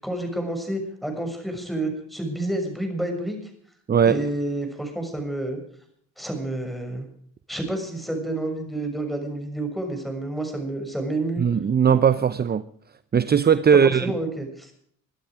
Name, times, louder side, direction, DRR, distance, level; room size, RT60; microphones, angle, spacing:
voice 1, 0.0-3.4 4.0-5.6 6.2-7.0 7.5-11.4 14.0-14.7, right 1 dB, ahead, 6.7 m, -29 dB
voice 2, 3.9-4.2 11.4-12.6 13.1-14.1, right 7 dB, 30° right, 0.8 m, -18 dB
23.0 x 12.0 x 5.0 m
cardioid pair, 90°, 30 cm